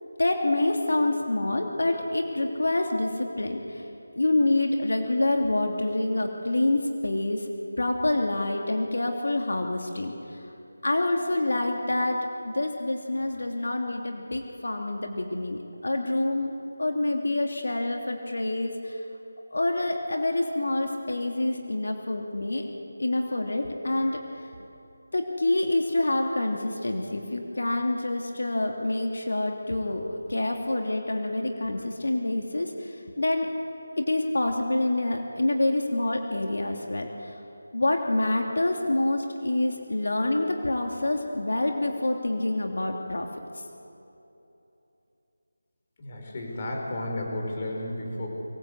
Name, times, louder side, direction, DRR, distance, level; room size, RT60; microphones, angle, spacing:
voice 1, 0.2-3.6 4.2-7.4 7.8-10.1 10.8-12.2 12.4-16.5 16.8-18.9 19.5-22.6 23.0-24.2 25.1-32.7 33.2-33.5 34.0-37.1 37.7-43.3, left 2 dB, 80° left, 2 dB, 2.8 m, -27 dB
voice 2, 46.0-48.3, left 1 dB, 30° left, 0 dB, 5.0 m, -33 dB
24.5 x 19.0 x 8.3 m, 2.9 s
figure-of-eight pair, 170°, 0 cm